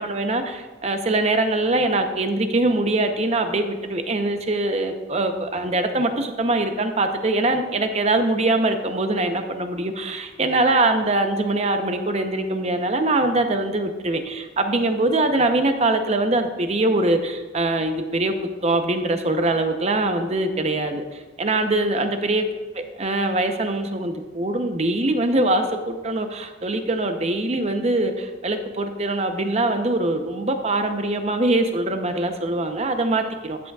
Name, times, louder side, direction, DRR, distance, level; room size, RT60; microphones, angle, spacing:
voice 1, 0.0-18.3 18.6-22.4 23.0-33.7, right 2 dB, 35° right, 6 dB, 0.8 m, -23 dB
13.0 x 8.9 x 2.4 m, 1.3 s
head